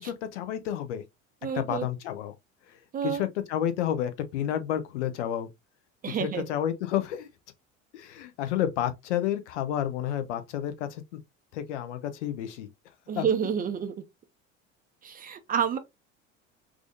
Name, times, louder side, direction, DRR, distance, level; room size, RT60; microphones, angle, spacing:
voice 1, 0.0-1.0 1.5-2.3 2.7-5.5 6.2-7.3 7.9-11.2 11.5-12.7 13.2-13.3, left 10 dB, 60° left, 0.7 m, -30 dB
voice 2, 1.4-1.9 2.9-3.2 6.0-6.5 13.1-13.9 15.0-15.8, right 8 dB, 25° right, 0.5 m, -29 dB
4.8 x 2.5 x 2.5 m
figure-of-eight pair, 65°, 39 cm